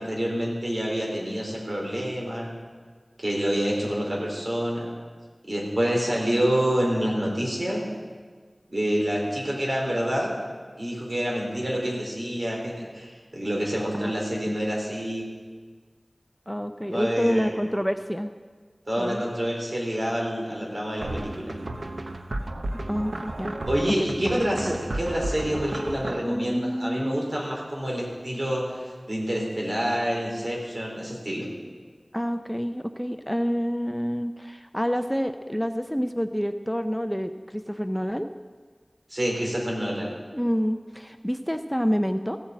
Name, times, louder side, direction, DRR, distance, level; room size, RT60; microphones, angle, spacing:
voice 1, 0.0-2.5 3.2-4.9 5.4-7.8 8.7-10.3 10.8-15.3 16.9-17.5 18.9-21.5 23.7-31.5 39.1-40.1, equal, 55° right, -2 dB, 3.8 m, -27 dB
voice 2, 16.5-18.3 19.0-19.2 22.9-23.5 24.0-24.4 26.2-27.3 32.1-38.3 40.3-42.4, equal, 5° left, 8 dB, 0.5 m, -28 dB
sound 1, 21.0-26.2, right 1 dB, 85° right, 0.8 m, -33 dB
15.5 x 8.7 x 7.4 m, 1.5 s
wide cardioid pair, 45°, 0 cm